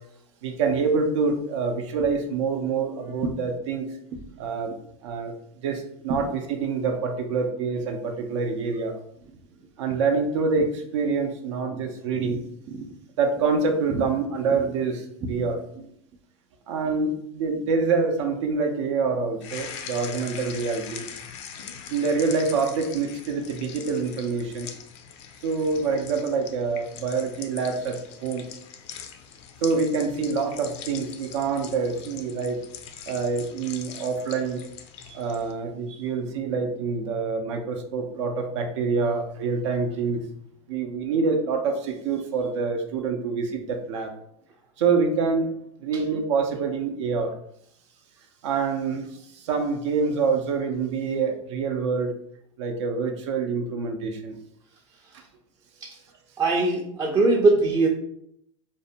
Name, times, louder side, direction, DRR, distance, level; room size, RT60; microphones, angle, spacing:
voice 1, 0.4-3.9 4.4-4.8 5.0-5.3 5.6-8.9 9.8-12.4 13.2-15.6 16.7-21.1 21.9-24.7 25.4-28.4 29.6-32.6 33.1-34.6 35.1-40.2 40.7-44.1 44.8-45.5 45.8-47.3 48.4-49.0 49.3-52.2 52.6-54.4, right 4 dB, 85° right, 4 dB, 0.5 m, -26 dB
sound 1, 19.4-35.5, left 8 dB, 75° left, 0.4 m, -42 dB
voice 2, 56.4-57.9, right 3 dB, 25° right, -2 dB, 0.4 m, -22 dB
2.5 x 2.1 x 2.7 m, 0.73 s
supercardioid pair, 115°, 15 cm